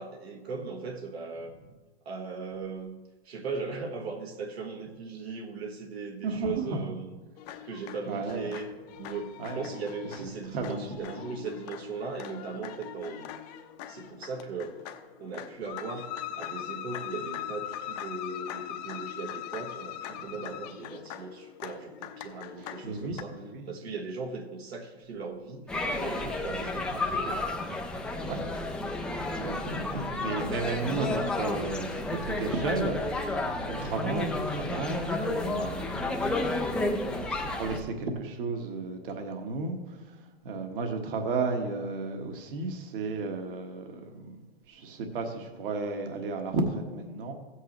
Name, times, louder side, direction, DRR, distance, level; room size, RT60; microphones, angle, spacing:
voice 1, 0.0-1.5 2.0-2.9 3.2-7.2 7.6-8.7 9.0-13.3 13.9-14.7 15.2-16.1 16.4-23.4 23.7-27.4, right 4 dB, 75° right, 1 dB, 1.4 m, -38 dB
voice 2, 6.2-6.8 8.1-8.6 9.4-9.6 10.2-11.2 22.6-23.7 28.2-28.4 29.4-36.2 37.1-39.8 40.4-44.4 44.7-47.3, right 3 dB, 55° right, 4 dB, 1.5 m, -33 dB
sound 1, 7.4-23.2, left 10 dB, 40° left, 0.7 m, -41 dB
sound 2, 25.7-37.8, left 2 dB, 5° left, 0.4 m, -31 dB
15.0 x 8.1 x 3.0 m, 1.3 s
hypercardioid pair, 135°, 32 cm